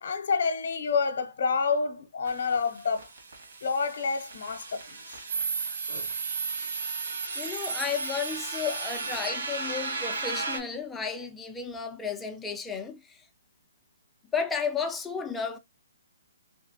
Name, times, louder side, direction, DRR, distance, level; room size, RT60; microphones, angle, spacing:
voice 1, 0.0-3.1 3.6-5.0 5.9-6.1, left 5 dB, 55° left, 0.7 m, -28 dB
sound 1, 2.3-10.6, right 4 dB, 60° right, 2.1 m, -34 dB
voice 2, 7.4-13.2 14.3-15.6, left 6 dB, 5° left, 0.4 m, -33 dB
3.8 x 3.3 x 2.7 m
hypercardioid pair, 170°, 0 cm